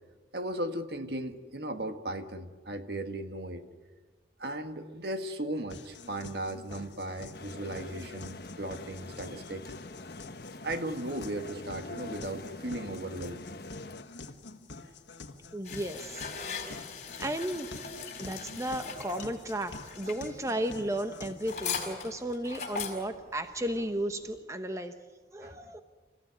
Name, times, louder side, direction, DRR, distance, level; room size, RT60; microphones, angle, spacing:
voice 1, 0.3-3.6 4.4-9.7 10.6-13.4 25.4-25.6, right 1 dB, 60° right, 8 dB, 1.6 m, -36 dB
sound 1, 5.7-21.7, left 3 dB, 80° left, 1.6 m, -48 dB
King's Cross staion crowd atmos, 7.3-14.0, left 2 dB, 55° left, 1.0 m, -44 dB
voice 2, 15.5-16.3 17.2-17.7 18.2-24.9 25.3-25.8, right 1 dB, 15° right, 8 dB, 0.9 m, -34 dB
sound 2, 15.6-24.4, left 5 dB, 40° left, 5.1 m, -40 dB
29.0 x 15.5 x 9.4 m, 1.4 s
head